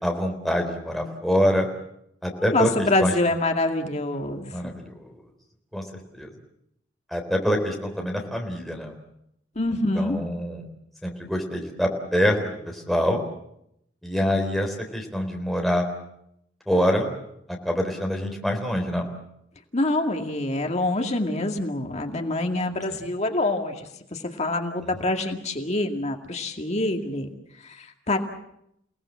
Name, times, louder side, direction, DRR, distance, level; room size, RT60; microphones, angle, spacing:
voice 1, 0.0-1.7 2.2-2.7 3.0-3.1 4.5-5.1 5.7-5.8 6.1-6.3 7.1-8.9 10.0-10.6 11.0-13.2 14.0-15.9 16.7-17.1 17.6-19.1 24.8-24.9, equal, ahead, 1 dB, 3.8 m, -25 dB
voice 2, 2.4-4.7 9.6-10.2 19.7-27.3 27.6-28.2, left 2 dB, 35° left, 4 dB, 2.2 m, -26 dB
29.5 x 18.5 x 7.5 m, 0.77 s
head